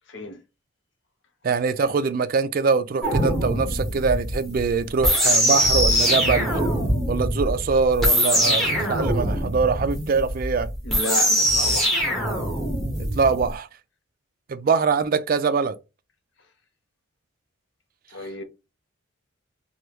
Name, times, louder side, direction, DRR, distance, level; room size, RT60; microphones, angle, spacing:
voice 1, 0.1-0.4 10.8-12.1 18.1-18.4, left 1 dB, 55° left, 0.8 m, -32 dB
voice 2, 1.4-6.5 7.1-8.6 8.9-10.7 13.0-13.7 14.5-15.8, right 5 dB, 45° right, 0.3 m, -23 dB
sound 1, 3.0-13.5, equal, ahead, 1.0 m, -22 dB
3.3 x 2.3 x 2.9 m
head